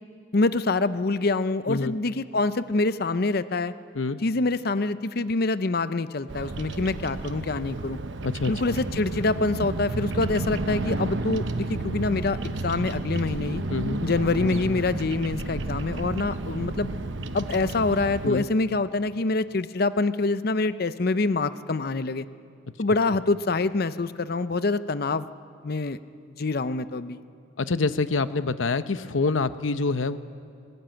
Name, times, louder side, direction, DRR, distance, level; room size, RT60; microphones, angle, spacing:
voice 1, 0.3-3.7 4.2-8.0 8.5-13.6 14.0-16.9 17.3-22.3 22.8-25.3 25.6-26.0 26.4-27.2, left 3 dB, 50° left, 14 dB, 0.6 m, -25 dB
Bird vocalization bird call bird song, 6.3-18.3, right 2 dB, 70° right, 0.9 m, -31 dB
voice 2, 8.2-8.7 13.7-14.0 18.2-18.5 27.6-30.2, left 3 dB, 85° left, 12 dB, 0.8 m, -26 dB
20.0 x 18.0 x 9.1 m, 2.4 s
head